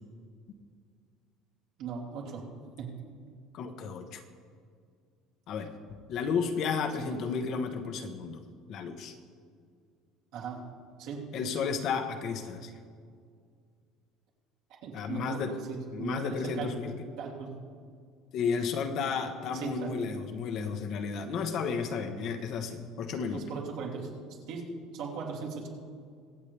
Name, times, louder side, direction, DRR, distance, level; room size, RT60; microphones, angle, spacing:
voice 1, 1.8-2.5 2.8-2.9 7.0-7.2 10.3-10.7 11.0-11.3 14.8-16.7 17.2-17.6 19.5-20.0 23.3-24.1 24.5-25.7, right 5 dB, 65° right, -2 dB, 3.0 m, -38 dB
voice 2, 3.5-4.2 5.5-8.4 8.7-9.2 11.3-12.7 14.9-15.6 15.9-16.9 18.3-23.4, left 5 dB, 50° left, 6 dB, 1.1 m, -33 dB
24.0 x 8.2 x 3.4 m, 2.2 s
cardioid pair, 150°, 0 cm